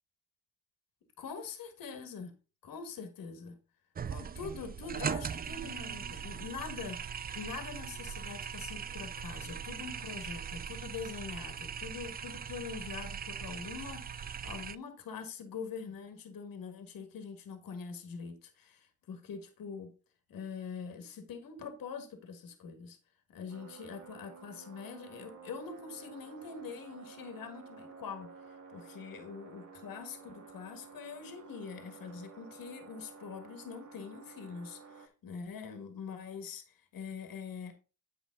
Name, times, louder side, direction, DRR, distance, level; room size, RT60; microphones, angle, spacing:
voice 1, 1.2-2.3 2.6-3.6 4.0-7.0 7.3-19.9 20.3-23.0 23.3-37.7, left 5 dB, 65° left, 1.7 m, -44 dB
sound 1, 4.0-14.8, right 7 dB, 25° right, 0.4 m, -40 dB
sound 2, 23.5-35.1, right 5 dB, 55° right, 1.9 m, -52 dB
8.5 x 5.2 x 3.8 m
supercardioid pair, 50°, 36 cm